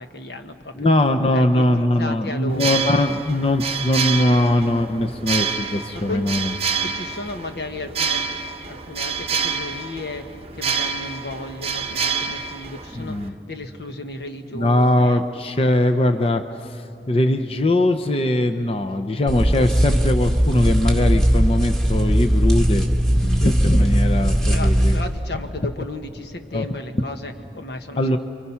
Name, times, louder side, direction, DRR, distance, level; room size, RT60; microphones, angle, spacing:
voice 1, 0.0-0.9 1.3-2.9 5.9-6.6 6.8-8.3 8.6-15.2 23.4-23.8 24.5-28.2, left 2 dB, 65° left, 6 dB, 1.5 m, -34 dB
voice 2, 0.8-6.5 12.9-13.3 14.5-25.0 26.5-26.6 28.0-28.2, left 1 dB, 30° left, 6 dB, 0.7 m, -21 dB
sound 1, 2.5-13.3, right 6 dB, 35° right, 0.9 m, -28 dB
sound 2, 19.3-25.0, equal, ahead, 1.9 m, -18 dB
29.0 x 24.0 x 5.7 m, 2.4 s
head